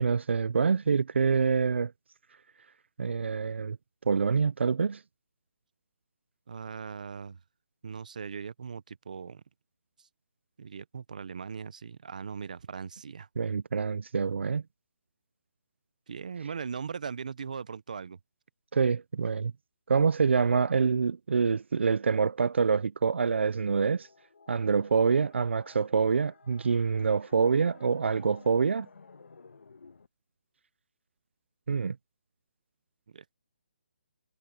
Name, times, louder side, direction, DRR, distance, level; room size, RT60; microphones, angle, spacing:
voice 1, 0.0-1.9 3.0-3.8 4.1-5.0 13.4-14.6 18.7-19.5 19.9-24.1 24.5-28.9 31.7-32.0, right 5 dB, 90° right, 0.4 m, -26 dB
voice 2, 6.5-7.4 7.8-9.4 10.0-10.1 10.6-13.3 16.1-18.2 33.1-33.3, right 6 dB, 40° right, 0.6 m, -39 dB
sound 1, 23.5-30.1, left 4 dB, 85° left, 1.5 m, -55 dB
hypercardioid pair, 180°, 6 cm